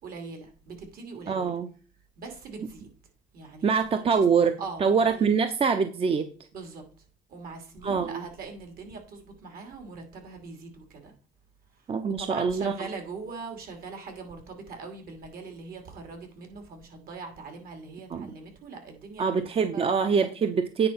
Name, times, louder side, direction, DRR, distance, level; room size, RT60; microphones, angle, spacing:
voice 1, 0.0-1.6 2.2-2.9 3.3-4.2 4.6-5.3 6.5-6.8 7.3-11.1 12.0-19.9, right 4 dB, 60° right, 2.7 m, -41 dB
voice 2, 1.3-1.7 3.6-6.3 7.8-8.2 11.9-12.7 18.1-18.3 19.2-20.9, right 5 dB, 35° right, 0.7 m, -24 dB
9.1 x 4.2 x 5.7 m
cardioid pair, 110°, 17 cm